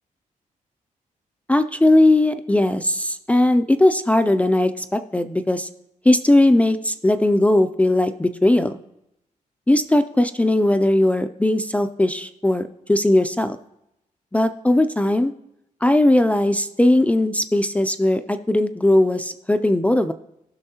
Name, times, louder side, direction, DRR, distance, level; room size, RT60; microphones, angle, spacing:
voice 1, 1.5-5.7 6.1-8.8 9.7-13.6 14.3-15.3 15.8-20.1, left 1 dB, 10° left, 9 dB, 0.3 m, -18 dB
15.5 x 6.1 x 2.8 m, 0.82 s
wide cardioid pair, 155°, 14 cm